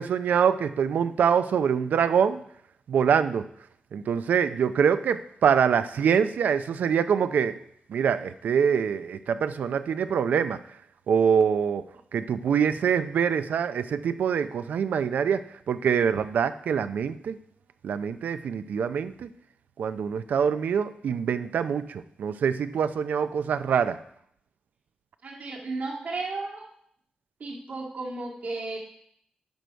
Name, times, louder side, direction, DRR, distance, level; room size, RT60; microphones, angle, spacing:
voice 1, 0.0-2.4 2.9-3.4 3.9-7.6 7.9-10.6 11.1-11.9 12.1-17.4 17.8-19.3 19.8-24.0, right 7 dB, 85° right, 11 dB, 0.5 m, -24 dB
voice 2, 25.2-26.6 27.4-28.8, right 3 dB, 65° right, -2 dB, 1.9 m, -34 dB
10.5 x 6.3 x 4.5 m, 0.69 s
wide cardioid pair, 100°, 3 cm